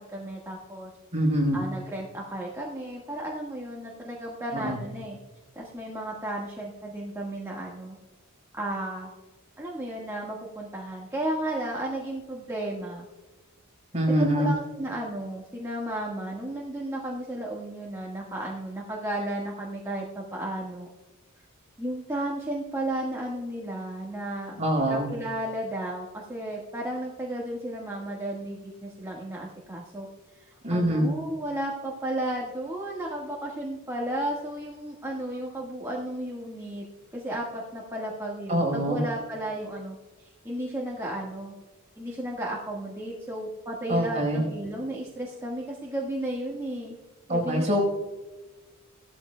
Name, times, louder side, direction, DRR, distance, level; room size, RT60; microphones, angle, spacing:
voice 1, 0.1-0.9 1.5-5.2 5.5-8.0 8.5-9.1 9.6-13.1 14.2-20.9 21.8-24.6 24.9-30.1 30.7-36.8 37.1-41.5 42.0-46.9 47.3-47.7, right 1 dB, 15° right, -4 dB, 1.5 m, -33 dB
voice 2, 1.1-1.6 4.5-4.8 13.9-14.5 24.6-25.1 30.6-31.1 38.5-39.0 43.9-44.4 47.3-47.8, right 1 dB, 30° right, -1 dB, 4.4 m, -24 dB
17.5 x 13.5 x 2.2 m, 1.2 s
head